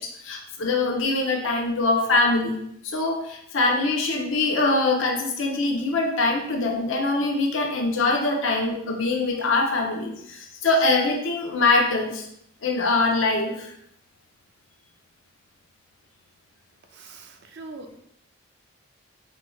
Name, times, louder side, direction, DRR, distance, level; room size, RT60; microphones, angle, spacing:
voice 1, 0.0-2.6 2.8-12.3 12.6-13.7, left 3 dB, 70° left, 1 dB, 0.6 m, -23 dB
voice 2, 16.9-18.0, right 3 dB, 55° right, 5 dB, 0.4 m, -42 dB
4.2 x 3.1 x 2.3 m, 0.72 s
head